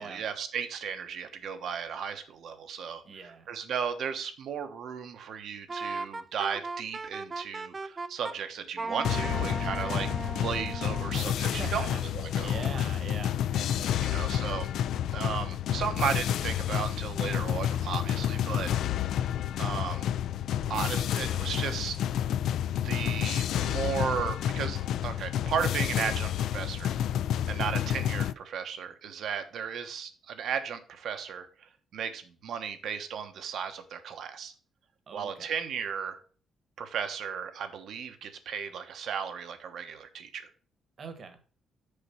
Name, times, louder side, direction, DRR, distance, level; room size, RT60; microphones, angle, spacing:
voice 1, 0.0-3.0 3.5-10.1 10.4-12.7 14.0-14.7 15.1-18.7 19.5-20.1 20.7-22.0 22.8-26.9 27.5-34.5 35.1-36.2 36.8-40.5, right 7 dB, 65° right, 8 dB, 1.1 m, -35 dB
voice 2, 3.0-3.5 9.1-9.4 9.8-10.1 11.5-12.0 12.4-14.3 27.5-27.7 35.1-35.5 41.0-41.4, right 4 dB, 40° right, 9 dB, 1.3 m, -43 dB
Wind instrument woodwind instrument, 5.7-8.4 8.8-11.2, right 3 dB, 20° right, 0.4 m, -37 dB
sound 1, 9.0-28.3, left 10 dB, 75° left, 0.4 m, -30 dB
6.8 x 5.1 x 5.7 m, 0.41 s
cardioid pair, 155°, 0 cm